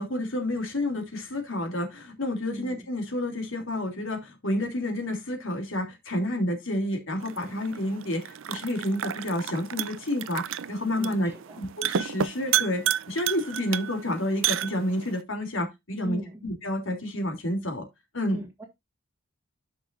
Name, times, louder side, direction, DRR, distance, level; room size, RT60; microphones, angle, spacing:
voice 1, 0.0-11.3 11.6-17.9 18.1-18.4, left 1 dB, 65° left, 3.0 m, -30 dB
voice 2, 2.5-2.9 11.0-11.6 16.0-16.5 18.3-18.6, right 1 dB, 10° right, 1.8 m, -39 dB
sound 1, 7.2-15.2, right 10 dB, 65° right, 0.5 m, -32 dB
12.0 x 6.1 x 2.5 m
head